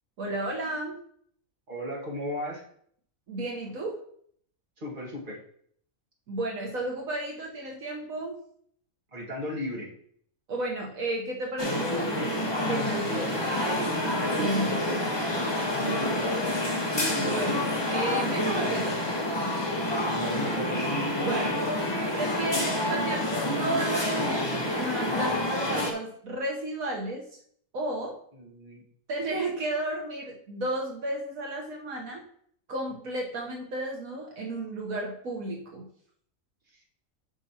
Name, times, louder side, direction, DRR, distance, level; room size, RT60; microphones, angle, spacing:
voice 1, 0.2-1.0 3.3-4.0 6.3-8.4 10.5-15.1 17.2-19.0 21.2-27.2 27.7-28.2 29.1-32.2 32.7-35.9, right 2 dB, 80° right, -1 dB, 1.6 m, -33 dB
voice 2, 1.7-2.6 4.8-5.4 9.1-9.9 15.8-16.4 20.1-20.9 28.3-28.8, left 1 dB, 35° right, -4 dB, 2.0 m, -36 dB
sound 1, 11.6-25.9, left 1 dB, 20° left, 0.9 m, -28 dB
9.0 x 5.8 x 2.9 m, 0.63 s
omnidirectional pair, 1.4 m